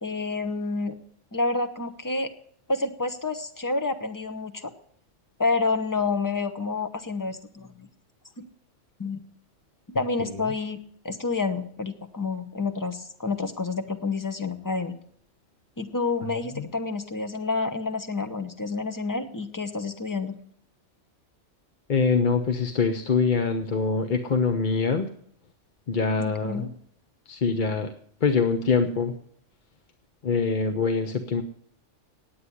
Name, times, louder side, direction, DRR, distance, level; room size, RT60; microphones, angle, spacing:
voice 1, 0.0-0.9 1.3-2.3 2.7-4.7 5.4-7.9 8.4-8.5 9.0-9.2 9.9-10.8 11.0-14.9 15.8-20.3 26.2-26.7, left 3 dB, 15° left, 8 dB, 0.9 m, -29 dB
voice 2, 21.9-25.1 25.9-26.7 27.3-27.9 28.2-29.1 30.2-31.4, left 5 dB, 45° left, 6 dB, 0.9 m, -24 dB
9.5 x 8.7 x 9.8 m, 0.63 s
omnidirectional pair, 1.3 m